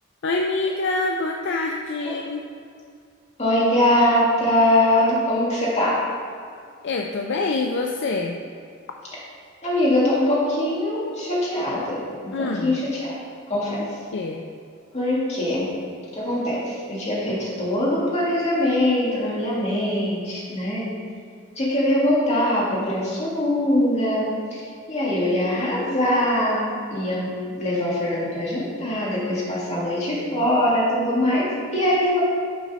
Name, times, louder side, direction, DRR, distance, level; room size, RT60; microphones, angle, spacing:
voice 1, 0.2-2.4 6.8-8.4 12.3-12.8 14.1-14.4, left 3 dB, 55° left, 2 dB, 0.4 m, -25 dB
voice 2, 3.4-6.0 9.6-12.0 12.2-13.2 13.5-13.8 14.9-15.7 16.1-20.9 21.6-24.6 24.9-32.2, left 1 dB, 35° left, -6 dB, 1.9 m, -22 dB
6.9 x 4.2 x 6.1 m, 2.3 s
head